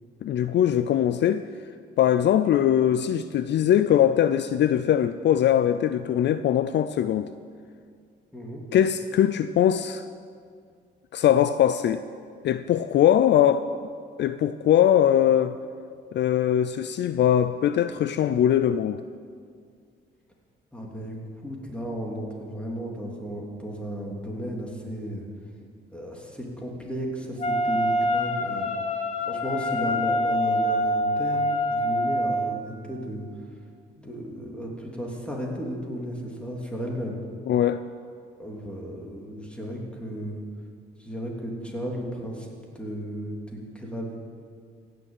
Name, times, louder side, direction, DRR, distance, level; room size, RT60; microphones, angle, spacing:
voice 1, 0.2-1.4 2.0-7.3 8.7-10.1 11.1-12.0 12.4-13.7 14.2-15.6 16.1-19.0 37.5-37.8, left 10 dB, 60° left, 12 dB, 0.5 m, -21 dB
voice 2, 20.7-21.2 21.4-25.2 25.9-33.3 34.0-37.2 38.4-40.4 41.0-42.5 42.7-44.2, equal, 5° left, -2 dB, 3.2 m, -34 dB
Wind instrument woodwind instrument, 27.4-32.6, left 1 dB, 35° left, 1.6 m, -25 dB
16.0 x 6.8 x 9.1 m, 2.2 s
cardioid pair, 90°, 20 cm